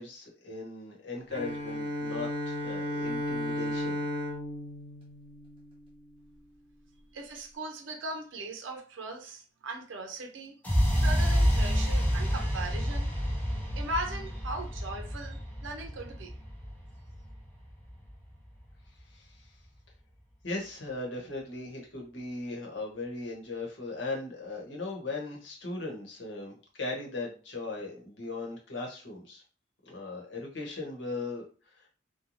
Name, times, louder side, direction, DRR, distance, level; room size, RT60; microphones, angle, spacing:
voice 1, 0.0-4.0 19.1-19.5 20.4-29.4 29.8-31.9, left 2 dB, 75° left, 1.0 m, -38 dB
Bowed string instrument, 1.3-6.0, left 1 dB, 30° right, 0.8 m, -34 dB
voice 2, 7.1-10.5 10.9-13.1 13.8-16.3, right 2 dB, 80° right, 0.5 m, -38 dB
sound 1, 10.6-18.6, equal, 10° left, 0.6 m, -29 dB
2.5 x 2.2 x 3.0 m
head